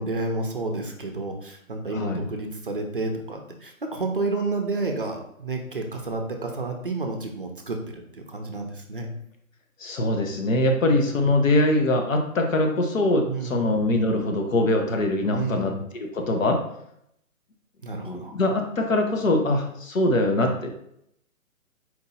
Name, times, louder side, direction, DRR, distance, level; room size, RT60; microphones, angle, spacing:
voice 1, 0.0-9.1 10.9-11.2 13.2-13.7 15.3-15.7 17.8-18.3, right 3 dB, 40° right, 3 dB, 0.5 m, -30 dB
voice 2, 1.9-2.2 9.8-16.6 18.0-20.7, left 1 dB, 70° left, 3 dB, 1.1 m, -23 dB
4.4 x 2.8 x 4.1 m, 0.75 s
hypercardioid pair, 175°, 42 cm